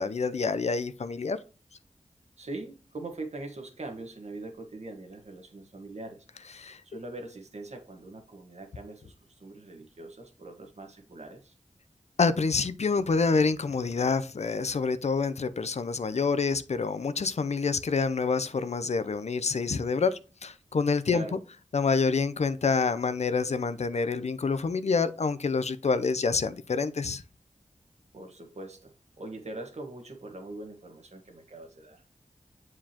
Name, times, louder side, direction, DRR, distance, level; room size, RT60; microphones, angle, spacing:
voice 1, 0.0-1.4 6.6-6.8 12.2-21.2 21.7-27.2, left 4 dB, 60° left, 0.5 m, -27 dB
voice 2, 2.4-6.3 6.8-11.5 21.1-21.4 28.1-32.1, right 2 dB, 60° right, 1.4 m, -42 dB
7.4 x 4.7 x 2.8 m
wide cardioid pair, 65°, 13 cm